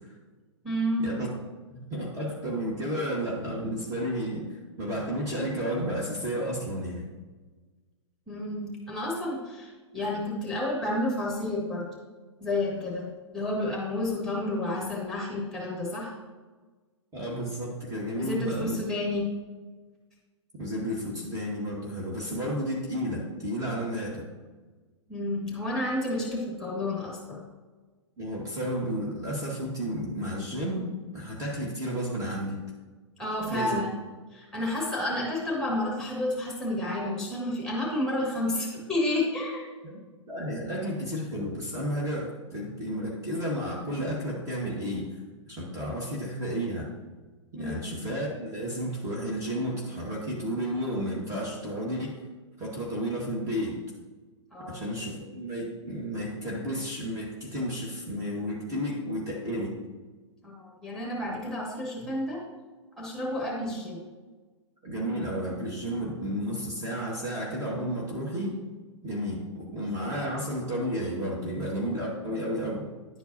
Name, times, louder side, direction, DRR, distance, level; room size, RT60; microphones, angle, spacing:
voice 1, 0.6-1.2 8.3-11.9 12.4-16.1 18.2-19.3 25.1-27.4 33.2-34.0 34.3-39.7 47.5-47.9 54.5-54.8 60.4-62.4 63.0-64.0, left 1 dB, 5° left, -3 dB, 1.9 m, -30 dB
voice 2, 1.7-7.1 17.1-18.8 20.5-24.3 28.2-32.6 33.5-33.8 39.8-40.0 40.3-45.2 45.5-46.9 47.5-52.2 52.6-53.8 54.6-59.8 62.0-62.1 64.8-68.6 69.0-72.8, equal, 20° right, -4 dB, 1.6 m, -32 dB
11.0 x 4.5 x 2.7 m, 1.3 s
figure-of-eight pair, 110°, 16 cm